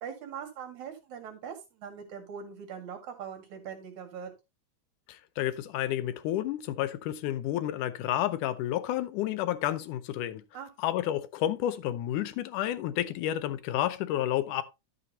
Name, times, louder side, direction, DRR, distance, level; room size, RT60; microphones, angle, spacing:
voice 1, 0.0-4.3 10.5-10.7, right 7 dB, 70° right, 3.3 m, -41 dB
voice 2, 5.1-10.4 10.8-14.6, left 12 dB, 90° left, 2.3 m, -30 dB
11.0 x 7.5 x 2.8 m
omnidirectional pair, 3.5 m